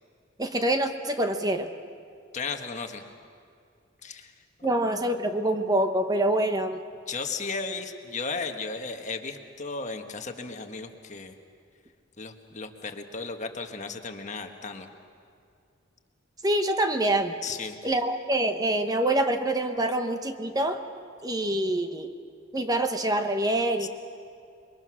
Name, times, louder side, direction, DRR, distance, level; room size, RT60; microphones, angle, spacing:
voice 1, 0.4-1.7 4.6-6.8 16.4-17.4 17.8-20.8 21.2-22.1 22.5-23.9, right 1 dB, 20° right, 7 dB, 0.9 m, -25 dB
voice 2, 2.3-3.0 4.0-4.3 4.6-4.7 7.1-11.3 12.2-14.9 17.4-18.0 23.8-23.9, left 4 dB, 40° left, 5 dB, 1.5 m, -35 dB
28.0 x 22.5 x 6.3 m, 2.4 s
head